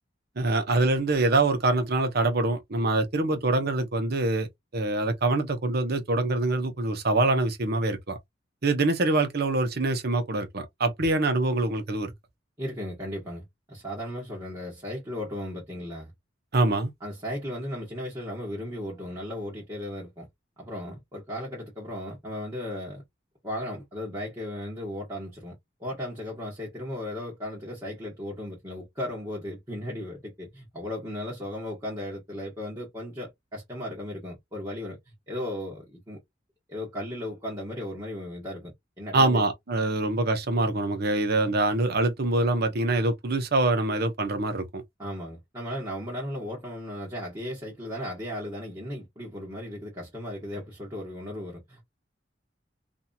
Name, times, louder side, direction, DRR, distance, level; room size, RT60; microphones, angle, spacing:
voice 1, 0.4-4.5 4.7-8.2 8.6-12.1 16.5-16.9 39.1-44.8, right 2 dB, 55° right, 0.8 m, -25 dB
voice 2, 12.6-16.1 17.0-20.3 20.6-23.0 23.4-25.5 25.8-36.2 36.7-39.4 45.0-51.8, left 1 dB, 20° right, 1.1 m, -36 dB
2.8 x 2.6 x 2.3 m
head